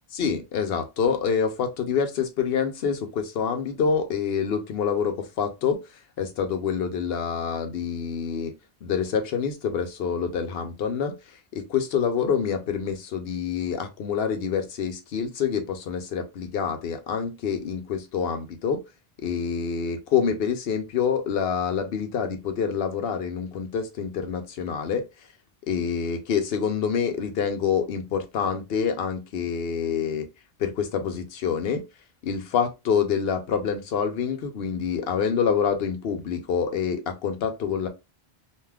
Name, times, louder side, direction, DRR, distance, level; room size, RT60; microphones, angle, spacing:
voice 1, 0.1-5.8 6.2-8.5 8.8-18.8 19.2-25.0 25.7-30.3 30.6-31.8 32.2-37.9, left 6 dB, 70° left, 0.8 m, -26 dB
2.5 x 2.3 x 3.3 m
omnidirectional pair, 1.1 m